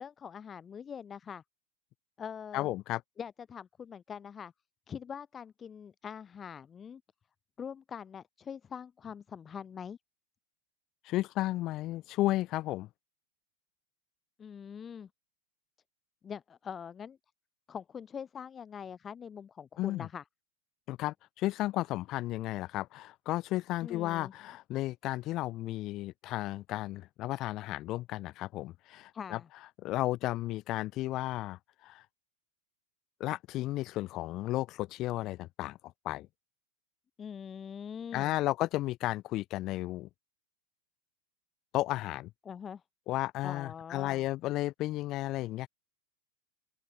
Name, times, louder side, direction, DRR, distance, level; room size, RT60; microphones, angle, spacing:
voice 1, 0.0-1.4 2.2-2.7 3.2-4.5 4.9-7.0 7.6-10.0 14.4-15.1 16.2-17.2 17.7-20.2 23.8-24.3 29.1-29.5 37.2-38.3 42.4-42.8 43.4-44.3, left 7 dB, 20° left, 5.3 m, -43 dB
voice 2, 2.5-3.0 11.0-12.9 19.8-20.1 20.9-29.4 29.8-32.0 33.2-35.8 36.0-36.3 38.1-40.1 41.7-42.3 43.1-45.7, left 16 dB, 35° left, 4.8 m, -33 dB
open air
figure-of-eight pair, 90°, 0 cm